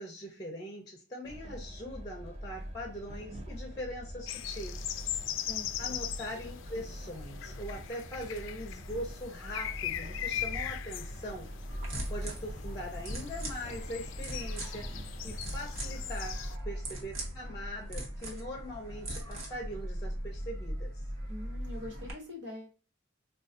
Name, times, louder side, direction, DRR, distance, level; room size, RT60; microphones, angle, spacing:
voice 1, 0.0-4.9 5.8-11.5 12.1-14.9 15.2-20.9, equal, 20° left, 2 dB, 0.6 m, -41 dB
Train, 1.2-16.4, equal, 30° right, 0.6 m, -44 dB
sound 1, 4.3-16.6, left 11 dB, 70° left, 0.3 m, -40 dB
sound 2, 11.7-22.1, right 1 dB, 80° right, 1.1 m, -39 dB
voice 2, 21.3-22.7, left 1 dB, 65° right, 0 dB, 1.4 m, -43 dB
3.8 x 2.3 x 2.5 m, 0.34 s
head